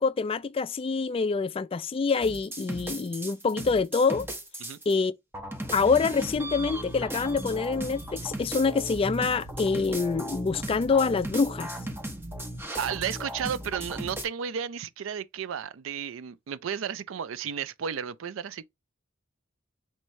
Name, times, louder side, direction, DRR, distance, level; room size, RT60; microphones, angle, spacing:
voice 1, 0.0-4.3 4.9-5.1 5.7-11.7, left 4 dB, 30° left, 0.3 m, -26 dB
sound 1, 2.2-4.9 5.3-14.3, right 1 dB, 10° right, 0.7 m, -36 dB
voice 2, 12.7-18.6, right 8 dB, 75° right, 0.4 m, -33 dB
4.4 x 3.1 x 2.6 m
head